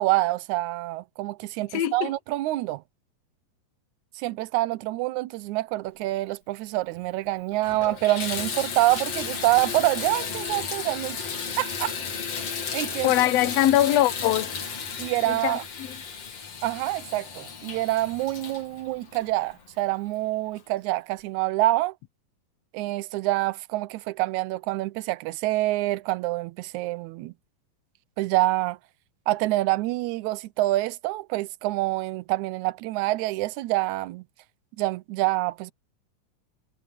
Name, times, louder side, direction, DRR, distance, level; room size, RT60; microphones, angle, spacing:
voice 1, 0.0-2.8 4.2-11.2 11.6-12.0 12.3-12.5 12.7-13.1 15.0-15.6 16.6-21.9 22.7-27.3 28.2-28.8 29.3-34.2 34.8-35.7, right 18 dB, 75° right, 1.8 m, -26 dB
voice 2, 1.7-2.1 13.0-14.6 15.3-16.0, left 13 dB, 70° left, 1.7 m, -22 dB
Water tap faucet / Bathtub (filling or washing), 6.9-7.0 7.5-19.9 20.6-20.7 21.2-21.3, left 6 dB, 50° left, 3.5 m, -34 dB
omnidirectional pair, 3.9 m